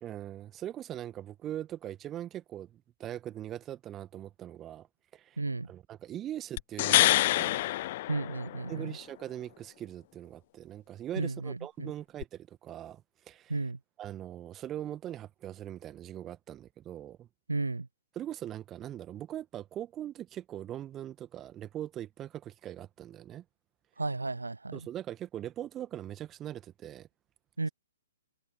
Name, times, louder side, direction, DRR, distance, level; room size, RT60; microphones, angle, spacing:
voice 1, 0.0-4.9 5.1-5.4 5.7-7.6 8.7-13.6 14.0-17.3 18.2-23.4 24.7-27.1, right 11 dB, 20° right, 1.8 m, -41 dB
voice 2, 5.4-5.7 8.1-9.0 11.2-11.9 13.5-13.8 17.5-17.9 24.0-24.9 27.6-27.7, right 3 dB, 75° right, 0.6 m, -33 dB
sound 1, 6.6-8.8 12.2-12.3, left 16 dB, 40° left, 0.4 m, -26 dB
figure-of-eight pair, 120°, 0 cm